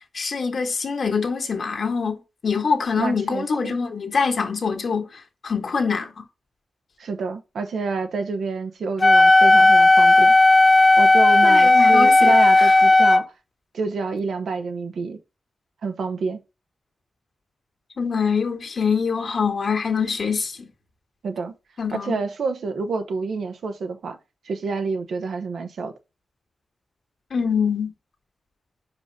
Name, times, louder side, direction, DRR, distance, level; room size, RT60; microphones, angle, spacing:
voice 1, 0.1-6.2 11.4-12.7 18.0-20.7 21.8-22.2 27.3-27.9, left 5 dB, 60° left, 1.7 m, -24 dB
voice 2, 3.0-3.8 7.0-10.3 11.0-13.3 13.7-15.2 15.8-16.4 21.2-21.5 22.0-24.2 24.4-25.9, right 4 dB, 75° right, 0.9 m, -28 dB
Wind instrument woodwind instrument, 9.0-13.2, left 2 dB, 30° left, 0.6 m, -14 dB
5.1 x 4.8 x 5.2 m
cardioid pair, 75°, 0 cm